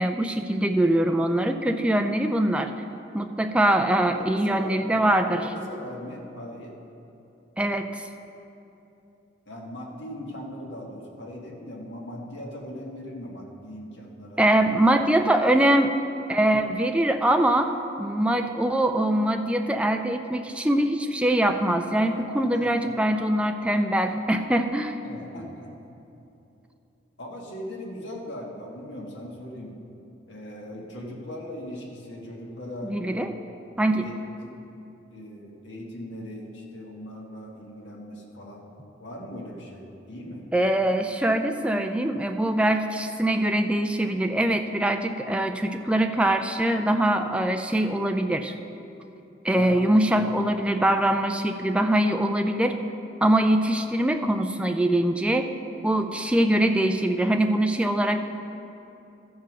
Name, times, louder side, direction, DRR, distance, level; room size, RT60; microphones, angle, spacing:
voice 1, 0.0-2.7 3.1-5.5 7.6-8.1 14.4-15.9 16.3-25.0 32.8-33.4 33.8-34.0 40.5-48.5 49.4-52.8 53.2-55.5 55.8-58.2, right 1 dB, 5° right, 6 dB, 0.4 m, -23 dB
voice 2, 4.1-5.1 5.3-6.8 9.5-14.6 22.1-22.9 25.0-25.7 27.2-29.8 30.3-33.4 34.0-34.6 35.1-38.7 39.0-40.5 49.5-50.3, left 1 dB, 70° left, -2 dB, 1.6 m, -39 dB
14.0 x 4.8 x 6.1 m, 2.9 s
head